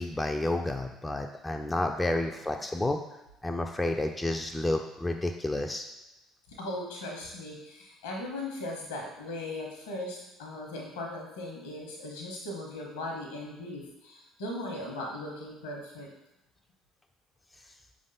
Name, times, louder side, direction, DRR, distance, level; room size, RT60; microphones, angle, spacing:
voice 1, 0.0-3.0 3.4-5.9, left 1 dB, 15° left, 4 dB, 0.4 m, -30 dB
voice 2, 6.5-16.1, left 1 dB, 75° left, -1 dB, 1.0 m, -38 dB
5.0 x 3.4 x 2.7 m, 0.94 s
figure-of-eight pair, 55°, 0 cm